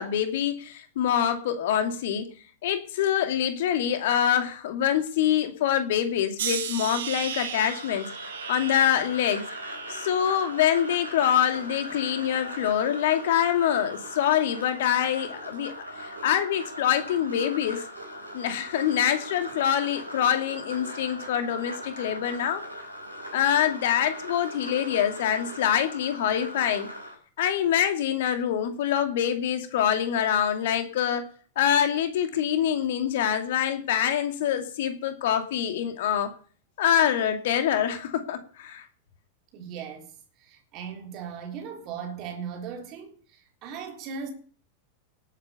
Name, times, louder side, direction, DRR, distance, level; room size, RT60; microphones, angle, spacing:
voice 1, 0.0-2.3 2.6-8.1 8.5-9.5 9.9-15.7 16.0-17.8 18.3-22.6 23.3-26.9 27.4-31.3 31.6-36.3 36.8-38.8, left 9 dB, 55° left, 2.3 m, -25 dB
sound 1, 6.4-11.5 12.0-12.7 13.4-13.7, right 8 dB, 60° right, 2.5 m, -37 dB
sound 2, 7.6-27.1, equal, 90° right, 4.9 m, -39 dB
voice 2, 39.5-40.1 40.4-43.1 43.6-44.3, right 7 dB, 40° right, 3.5 m, -37 dB
19.0 x 8.6 x 6.9 m
figure-of-eight pair, 90°, 0 cm